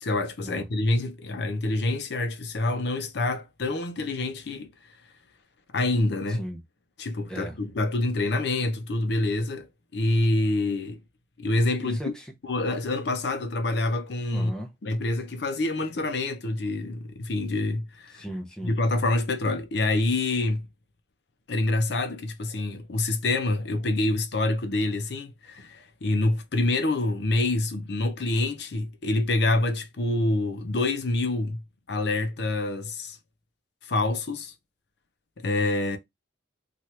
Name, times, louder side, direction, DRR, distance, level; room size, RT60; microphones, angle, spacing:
voice 1, 0.0-4.7 5.7-6.4 7.0-9.7 9.9-11.0 11.4-12.0 12.4-14.5 14.8-18.2 18.6-20.7 21.5-31.6 31.9-33.2 33.8-34.5 35.4-36.0, left 2 dB, 60° left, 0.5 m, -26 dB
voice 2, 6.3-6.6 7.3-7.6 11.8-12.3 14.3-14.7 18.1-18.7, right 1 dB, 5° left, 0.5 m, -36 dB
2.8 x 2.4 x 3.1 m
head